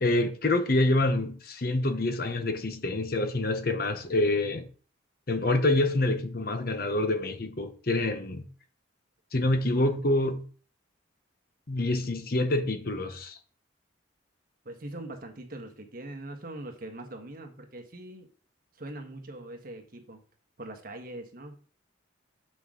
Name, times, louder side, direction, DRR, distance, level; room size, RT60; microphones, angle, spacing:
voice 1, 0.0-4.7 5.3-8.5 9.3-10.4 11.7-13.4, left 2 dB, 50° left, 0.9 m, -26 dB
voice 2, 14.6-18.3 18.8-20.2 20.6-21.6, right 1 dB, 50° right, 1.4 m, -42 dB
7.5 x 6.0 x 3.8 m
head